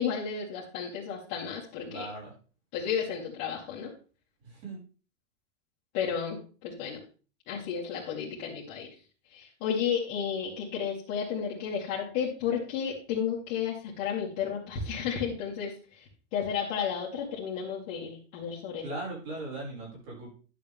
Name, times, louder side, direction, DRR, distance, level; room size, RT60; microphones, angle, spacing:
voice 1, 0.0-2.1 2.7-3.9 5.9-7.0 7.5-8.9 9.3-16.0 16.3-18.9, left 7 dB, 30° left, -7 dB, 2.3 m, -32 dB
voice 2, 1.9-2.3 4.4-4.8 18.8-20.3, right 2 dB, 40° right, -4 dB, 6.1 m, -38 dB
11.0 x 7.4 x 3.6 m, 0.37 s
supercardioid pair, 165°, 38 cm